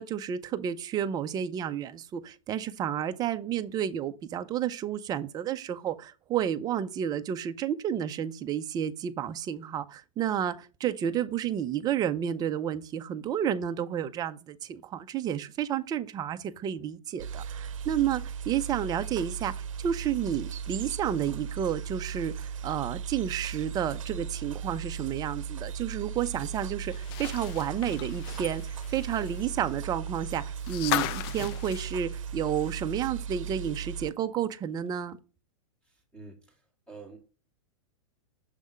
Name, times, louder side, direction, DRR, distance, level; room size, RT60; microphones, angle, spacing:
voice 1, 0.0-35.2, right 9 dB, 25° right, 0.5 m, -31 dB
sound 1, 17.2-34.1, right 7 dB, 75° right, 0.7 m, -37 dB
sound 2, 26.9-33.0 33.3-33.4 34.8-34.9, left 13 dB, 50° left, 0.5 m, -36 dB
voice 2, 35.8-37.2, right 4 dB, 5° left, 2.2 m, -49 dB
6.6 x 3.5 x 5.0 m
hypercardioid pair, 130°, 17 cm